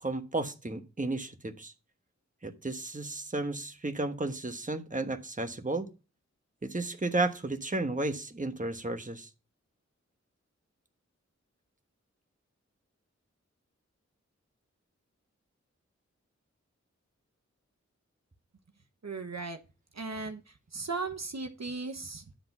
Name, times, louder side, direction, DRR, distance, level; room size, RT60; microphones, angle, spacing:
voice 1, 0.0-1.7 2.4-5.9 6.6-9.3, right 2 dB, 25° right, 1.3 m, -33 dB
voice 2, 19.0-19.6 19.9-20.4 20.7-22.2, right 3 dB, 65° right, 1.0 m, -36 dB
10.5 x 3.8 x 5.8 m
wide cardioid pair, 40°, 29 cm